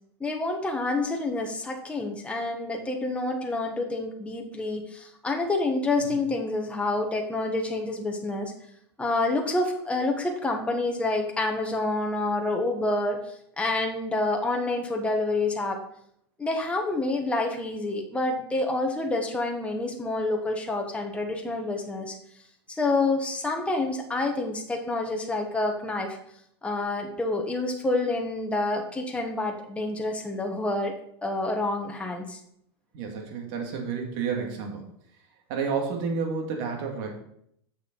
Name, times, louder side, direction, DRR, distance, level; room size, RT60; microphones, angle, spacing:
voice 1, 0.2-8.5 9.0-13.2 13.6-15.8 16.4-22.2 22.8-26.2 26.6-30.9 31.2-32.4, left 2 dB, 10° left, 1 dB, 1.4 m, -28 dB
voice 2, 32.9-34.8 35.5-37.1, right 5 dB, 60° right, 2 dB, 2.3 m, -30 dB
6.9 x 6.5 x 5.4 m, 0.71 s
hypercardioid pair, 105°, 14 cm